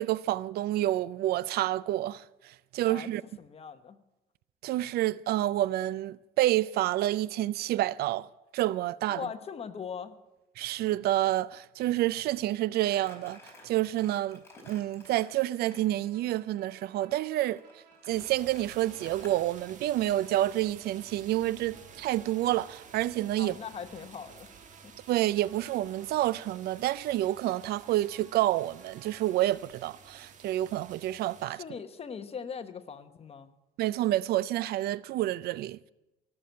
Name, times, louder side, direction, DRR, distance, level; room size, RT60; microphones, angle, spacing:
voice 1, 0.0-3.2 4.6-8.3 8.5-9.2 10.6-23.6 25.1-31.6 33.8-35.9, right 14 dB, 70° right, 0.4 m, -29 dB
voice 2, 3.4-4.0 9.1-10.2 23.4-24.9 31.5-33.5, left 6 dB, 35° left, 1.1 m, -40 dB
Crumpling crinkling, 12.8-15.9 17.5-19.7, left 2 dB, 15° left, 4.6 m, -53 dB
sound 1, 15.7-29.4, right 6 dB, 85° right, 2.6 m, -59 dB
sound 2, 18.1-31.5, right 6 dB, 45° right, 1.5 m, -52 dB
17.0 x 6.9 x 9.4 m
cardioid pair, 110°, 17 cm